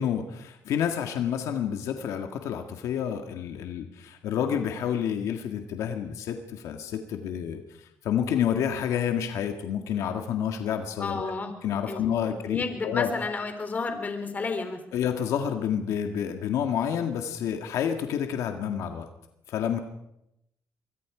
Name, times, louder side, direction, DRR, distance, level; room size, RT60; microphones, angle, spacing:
voice 1, 0.0-11.3 11.6-13.1 14.9-19.1 19.5-19.8, left 8 dB, 85° left, 5 dB, 1.8 m, -29 dB
voice 2, 11.0-11.5 11.9-12.0 12.5-14.8, left 4 dB, 30° left, 7 dB, 3.9 m, -31 dB
24.5 x 23.0 x 5.0 m, 0.83 s
cardioid pair, 105°, 5 cm